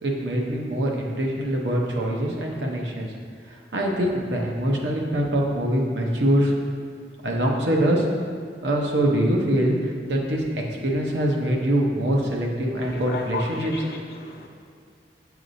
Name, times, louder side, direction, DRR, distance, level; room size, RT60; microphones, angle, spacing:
voice 1, 0.0-3.1 3.5-6.5 7.2-8.1 8.6-13.7, right 1 dB, 90° right, -1 dB, 0.9 m, -24 dB
voice 2, 12.8-14.5, left 3 dB, 60° left, 2 dB, 0.6 m, -34 dB
7.6 x 4.7 x 2.7 m, 2.2 s
head